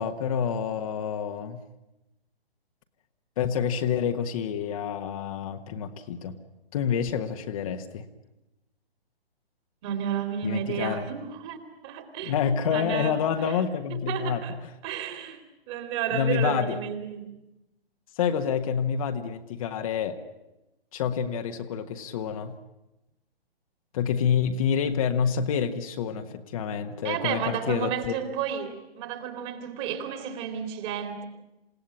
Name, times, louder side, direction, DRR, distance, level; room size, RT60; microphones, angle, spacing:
voice 1, 0.0-1.6 3.4-6.4 6.7-8.0 10.4-11.1 12.2-14.4 16.1-16.8 18.1-20.2 20.9-22.5 23.9-28.1, left 7 dB, 35° left, 5 dB, 1.4 m, -28 dB
voice 2, 9.8-11.6 11.8-13.2 13.5-13.6 13.9-14.5 14.8-15.4 15.7-17.4 27.0-31.2, right 8 dB, 30° right, 6 dB, 2.9 m, -32 dB
28.0 x 17.5 x 8.7 m, 0.96 s
figure-of-eight pair, 135°, 31 cm